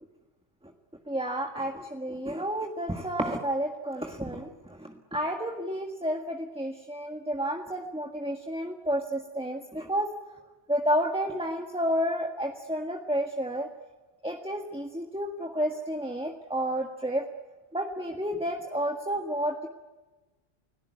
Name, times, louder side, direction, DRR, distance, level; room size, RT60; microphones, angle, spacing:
voice 1, 1.1-10.1 10.7-13.7 14.2-17.2 17.7-19.7, equal, 5° right, 3 dB, 1.6 m, -31 dB
30.0 x 18.0 x 9.4 m, 1.2 s
omnidirectional pair, 1.1 m